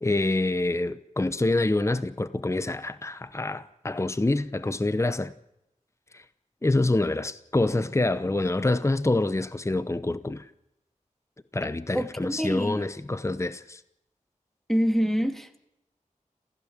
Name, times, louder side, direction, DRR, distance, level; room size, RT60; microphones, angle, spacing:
voice 1, 0.0-5.3 6.1-6.2 6.6-10.5 11.5-13.8, left 2 dB, 20° left, 0.8 m, -26 dB
voice 2, 11.9-12.9 14.7-15.6, equal, ahead, 2.3 m, -26 dB
27.5 x 16.0 x 7.3 m
wide cardioid pair, 80°, 13 cm